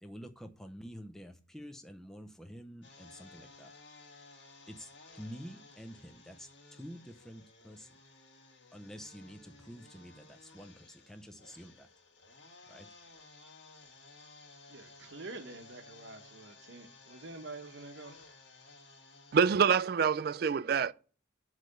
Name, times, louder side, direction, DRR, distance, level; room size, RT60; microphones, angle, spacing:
voice 1, 0.0-3.7 4.7-7.9 8.7-11.9 12.7-12.9, equal, ahead, 0.5 m, -48 dB
sound 1, 2.8-19.5, left 3 dB, 65° left, 1.4 m, -56 dB
voice 2, 14.7-18.2, right 3 dB, 70° right, 0.9 m, -47 dB
voice 3, 19.3-20.9, right 6 dB, 50° right, 0.3 m, -26 dB
8.1 x 3.2 x 6.4 m
head